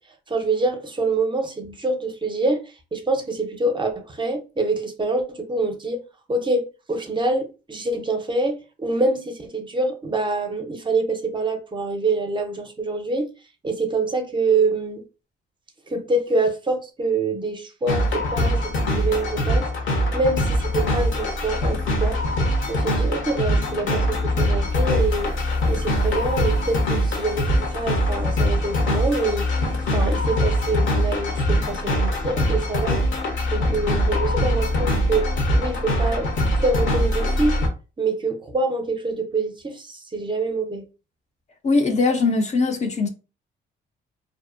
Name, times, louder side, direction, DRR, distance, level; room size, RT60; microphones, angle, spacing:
voice 1, 0.3-6.0 6.3-13.3 13.6-15.0 15.9-19.7 20.1-22.2 22.7-25.4 25.7-29.5 29.9-33.0 33.5-35.3 35.5-37.7 38.0-40.8, right 2 dB, 25° right, 0.5 m, -25 dB
sound 1, 17.9-37.7, left 1 dB, 70° left, 0.8 m, -22 dB
voice 2, 41.6-43.1, left 3 dB, 35° left, 0.4 m, -20 dB
2.6 x 2.0 x 2.4 m
cardioid pair, 90°, 20 cm